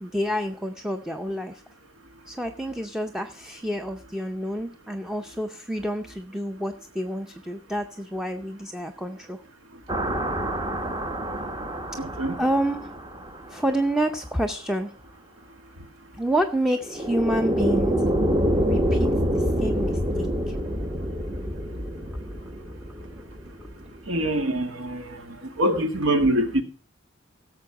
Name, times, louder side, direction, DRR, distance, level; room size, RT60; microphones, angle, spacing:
voice 1, 0.0-1.6 2.3-9.4 12.4-12.9 13.5-14.9 16.2-18.0 18.7-20.6 23.2-23.3, right 1 dB, 5° right, 0.6 m, -28 dB
sound 1, 9.9-13.8 16.8-24.0, equal, 20° right, 1.0 m, -27 dB
voice 2, 12.0-12.4 24.1-25.2 25.6-26.6, right 1 dB, 75° right, 1.7 m, -24 dB
16.0 x 7.0 x 4.8 m
head